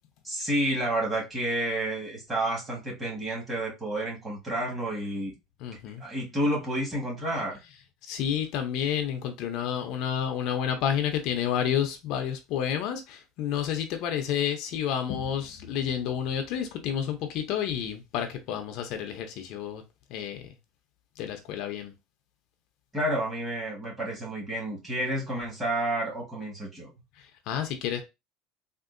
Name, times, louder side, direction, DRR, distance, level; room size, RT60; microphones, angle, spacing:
voice 1, 0.2-5.3 6.0-7.6 22.9-26.9, right 1 dB, 15° right, 1.3 m, -30 dB
voice 2, 5.6-6.0 8.1-19.8 20.1-20.5 21.2-21.9 27.2-28.0, left 9 dB, 55° left, 0.6 m, -30 dB
3.6 x 2.5 x 2.5 m
cardioid pair, 160°, 0 cm